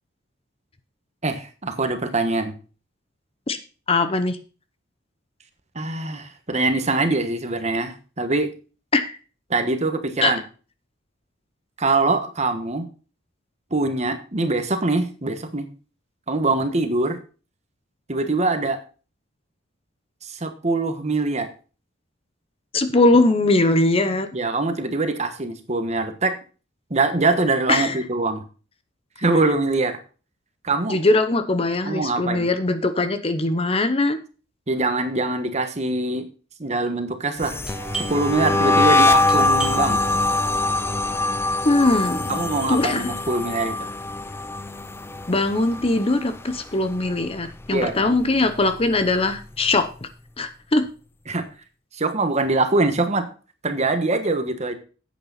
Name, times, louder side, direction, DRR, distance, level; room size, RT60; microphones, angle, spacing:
voice 1, 1.2-2.5 5.7-8.5 9.5-10.4 11.8-12.9 13.7-15.7 16.3-17.2 18.1-18.8 20.3-21.5 24.3-26.3 26.9-28.4 29.2-30.0 30.6-31.0 31.8-32.5 34.7-36.3 36.6-37.6 38.1-40.0 42.3-43.9 47.7-48.2 51.3-51.5 51.9-53.3 53.6-54.7, right 2 dB, 35° right, 8 dB, 1.3 m, -23 dB
voice 2, 3.9-4.4 8.9-9.2 10.2-10.3 22.7-24.3 27.7-28.0 30.9-34.2 41.6-42.4 42.7-43.1 45.3-50.1 50.4-50.9, left 2 dB, 30° left, 10 dB, 0.8 m, -21 dB
sound 1, 37.4-46.6 46.9-47.3 47.6-49.2, left 2 dB, 10° left, 0.4 m, -23 dB
Doorbell, 37.6-47.0 47.2-47.3 48.0-48.3 48.6-50.0, right 5 dB, 5° right, 2.3 m, -38 dB
9.9 x 8.4 x 4.0 m, 0.36 s
head